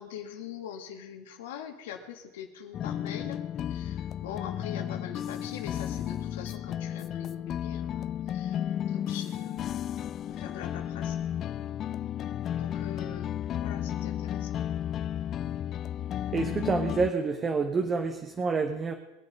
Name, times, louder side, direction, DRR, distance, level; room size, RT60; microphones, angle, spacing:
voice 1, 0.0-8.6 8.9-9.9 10.3-11.2 12.6-14.6, left 9 dB, 80° left, 5 dB, 2.1 m, -43 dB
sound 1, 2.7-17.1, left 10 dB, 40° left, 0.4 m, -33 dB
voice 2, 16.3-18.9, right 4 dB, 25° right, 5 dB, 1.2 m, -28 dB
22.5 x 7.7 x 5.3 m, 1.1 s
supercardioid pair, 110°, 0 cm